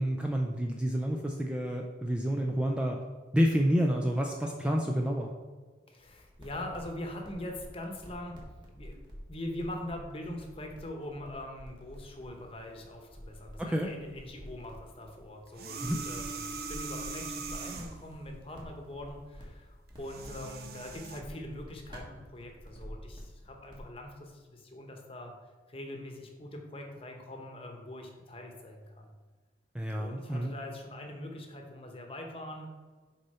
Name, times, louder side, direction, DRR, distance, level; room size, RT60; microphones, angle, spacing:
voice 1, 0.0-3.0 3.3-5.3 13.6-13.9 15.8-16.0 29.7-30.5, equal, 5° right, 0 dB, 0.4 m, -29 dB
voice 2, 5.9-8.4 8.7-25.3 25.7-29.1 30.0-32.7, left 1 dB, 30° left, 2 dB, 1.0 m, -42 dB
sound 1, 6.0-23.9, equal, 25° right, 1.5 m, -50 dB
sound 2, 15.5-18.1 19.9-21.2, right 4 dB, 55° right, 0.7 m, -40 dB
6.4 x 4.3 x 5.5 m, 1.4 s
head